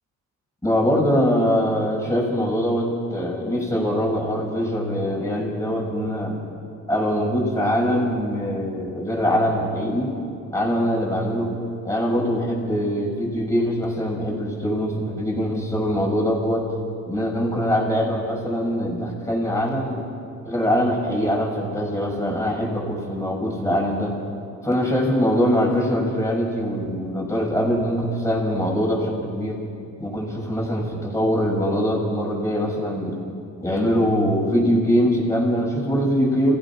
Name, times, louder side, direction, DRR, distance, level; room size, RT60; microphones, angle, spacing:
voice 1, 0.6-6.5 6.9-10.1 10.5-11.6 11.8-16.7 17.1-20.1 20.5-24.1 24.6-29.6 30.0-33.2 33.6-36.5, equal, 10° left, -2 dB, 7.0 m, -23 dB
27.5 x 16.5 x 5.9 m, 2.5 s
cardioid pair, 80°, 33 cm